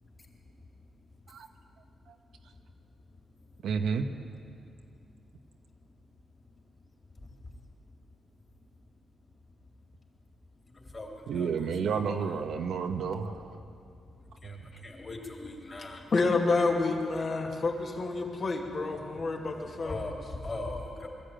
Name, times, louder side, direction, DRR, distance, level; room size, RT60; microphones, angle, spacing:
voice 1, 3.6-4.1 11.3-13.6 14.4-14.6, right 6 dB, 80° right, 5 dB, 1.3 m, -31 dB
voice 2, 14.8-16.1 19.8-21.1, left 2 dB, 25° left, 0 dB, 3.2 m, -38 dB
voice 3, 16.1-20.2, left 3 dB, 45° left, 0 dB, 2.5 m, -29 dB
22.0 x 14.0 x 9.0 m, 2.6 s
wide cardioid pair, 145°, 0 cm